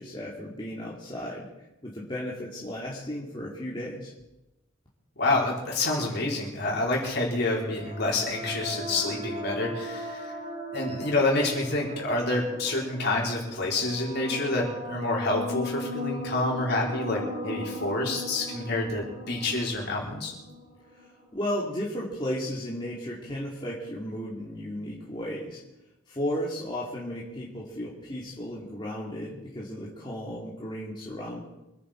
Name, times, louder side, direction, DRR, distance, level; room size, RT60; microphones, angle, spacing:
voice 1, 0.0-1.5 1.8-4.1 21.3-25.6 26.1-31.4, equal, 20° left, -5 dB, 2.5 m, -34 dB
voice 2, 5.2-10.3 10.7-20.3, left 2 dB, 50° left, -2 dB, 4.5 m, -28 dB
sound 1, 7.5-21.1, left 1 dB, 45° right, 7.1 m, -37 dB
25.5 x 10.0 x 4.5 m, 0.93 s
head